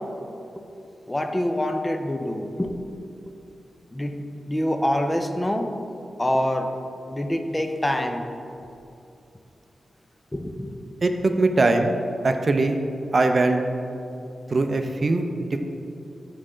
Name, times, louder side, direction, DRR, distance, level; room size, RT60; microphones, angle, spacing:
voice 1, 1.1-2.8 3.9-5.7 6.2-6.7 7.1-8.2 10.3-10.8, left 1 dB, 15° left, 5 dB, 0.5 m, -26 dB
voice 2, 11.0-11.9 12.2-12.8 13.1-13.6 14.5-15.6, right 2 dB, 45° right, 5 dB, 0.5 m, -21 dB
6.4 x 6.1 x 3.7 m, 2.7 s
wide cardioid pair, 85°, 0 cm